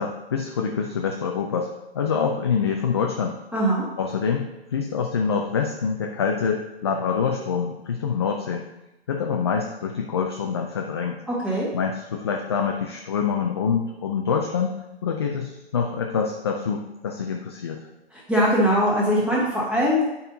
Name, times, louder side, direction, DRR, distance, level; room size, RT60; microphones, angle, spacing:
voice 1, 0.0-3.4 4.0-8.7 9.1-11.2 11.7-14.7 15.0-17.9, left 6 dB, 25° left, 2 dB, 0.4 m, -26 dB
voice 2, 3.5-3.8 11.3-11.7 18.1-20.1, equal, 5° right, -6 dB, 1.5 m, -21 dB
8.6 x 5.4 x 2.8 m, 0.94 s
hypercardioid pair, 140°, 32 cm